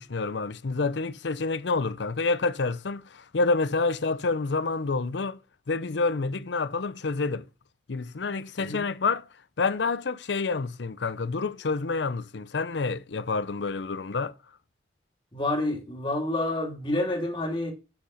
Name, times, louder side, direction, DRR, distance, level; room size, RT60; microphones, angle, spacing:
voice 1, 0.0-5.4 5.7-7.5 7.9-9.2 9.6-14.3, left 3 dB, 80° left, 0.6 m, -28 dB
voice 2, 15.3-17.7, left 1 dB, 25° left, 2.5 m, -28 dB
8.7 x 6.3 x 5.6 m
head